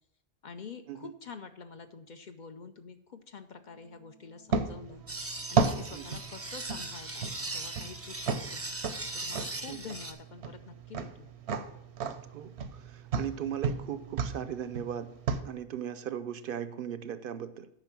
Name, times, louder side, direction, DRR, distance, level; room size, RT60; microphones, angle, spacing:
voice 1, 0.4-5.0 5.5-8.8 9.1-11.3, left 5 dB, 50° left, 8 dB, 0.7 m, -47 dB
Wind instrument woodwind instrument, 3.6-9.8, right 6 dB, 85° left, 2.0 m, -60 dB
sound 1, 4.5-15.4, right 5 dB, 85° right, 1.0 m, -34 dB
sound 2, 5.1-10.1, right 2 dB, 15° right, 0.6 m, -39 dB
voice 2, 12.3-15.1 15.4-17.7, right 9 dB, 65° right, 12 dB, 0.7 m, -38 dB
9.0 x 5.5 x 5.9 m, 0.76 s
omnidirectional pair, 1.1 m